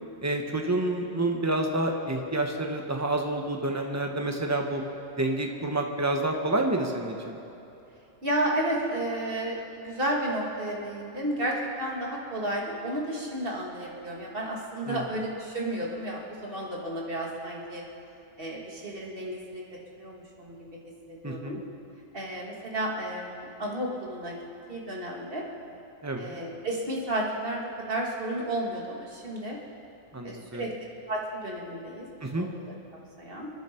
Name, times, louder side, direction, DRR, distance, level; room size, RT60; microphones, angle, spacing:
voice 1, 0.2-4.8 5.2-7.4 14.9-15.0 21.2-21.6 26.0-26.4 30.1-30.6 32.2-32.5, right 2 dB, 10° right, 3 dB, 1.1 m, -28 dB
voice 2, 8.2-17.8 18.4-19.6 19.9-20.7 21.1-21.6 22.1-24.4 24.7-25.4 26.2-29.6 30.2-30.7 31.1-32.1 32.3-32.7 33.2-33.5, right 1 dB, 40° right, -2 dB, 2.3 m, -32 dB
27.5 x 10.0 x 4.5 m, 2.9 s
omnidirectional pair, 1.5 m